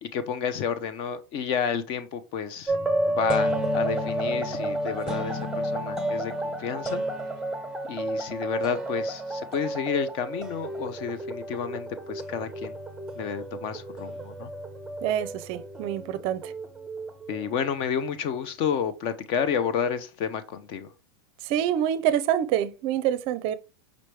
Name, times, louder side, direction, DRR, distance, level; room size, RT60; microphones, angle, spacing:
voice 1, 0.0-2.8 3.1-7.0 7.9-12.8 13.2-14.5 17.3-20.9, left 7 dB, 45° left, 0.6 m, -30 dB
sound 1, 2.7-17.7, right 1 dB, 5° right, 0.7 m, -31 dB
voice 2, 15.0-16.5 21.4-23.5, right 10 dB, 45° right, 0.5 m, -26 dB
5.1 x 3.1 x 3.2 m
hypercardioid pair, 130°, 13 cm